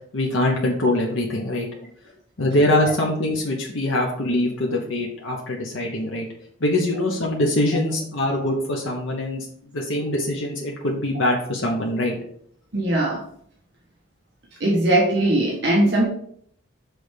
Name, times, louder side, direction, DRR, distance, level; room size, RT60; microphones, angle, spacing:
voice 1, 0.1-1.7 2.4-6.3 6.6-12.2, left 1 dB, 85° left, -1 dB, 1.1 m, -23 dB
voice 2, 12.7-13.2 14.6-16.0, right 1 dB, 60° right, -3 dB, 1.3 m, -19 dB
6.1 x 3.4 x 5.0 m, 0.63 s
head